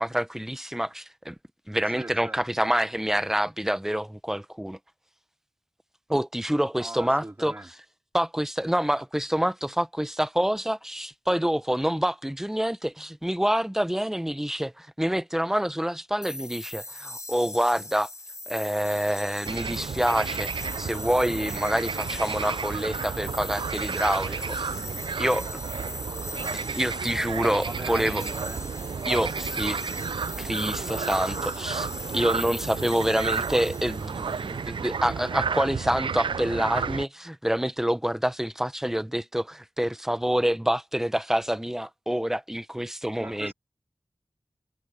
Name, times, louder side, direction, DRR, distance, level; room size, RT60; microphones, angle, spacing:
voice 1, 0.0-1.3 1.7-4.8 6.1-7.6 8.1-18.1 18.5-24.6 25.2-25.5 26.7-28.2 29.0-29.8 30.4-31.9 32.1-43.5, equal, 5° right, 0.9 m, -27 dB
voice 2, 2.0-2.4 6.8-7.7 27.6-28.7 43.2-43.5, right 1 dB, 30° right, 2.8 m, -40 dB
sound 1, 16.2-34.9, left 2 dB, 35° left, 6.8 m, -40 dB
sound 2, 19.4-37.0, right 5 dB, 85° right, 0.4 m, -32 dB
wide cardioid pair, 65°, 8 cm